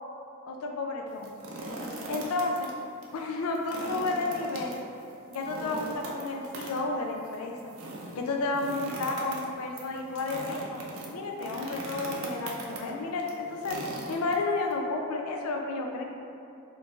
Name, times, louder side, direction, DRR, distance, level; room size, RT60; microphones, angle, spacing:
voice 1, 0.5-1.3 2.0-2.7 3.1-4.7 5.3-7.6 8.2-10.8 11.1-13.8 14.1-16.1, left 3 dB, 85° left, 1 dB, 0.4 m, -31 dB
sound 1, 1.1-2.7 3.0-3.1 3.5-14.7, right 1 dB, 75° right, 0.5 m, -40 dB
4.4 x 2.6 x 2.4 m, 2.6 s
head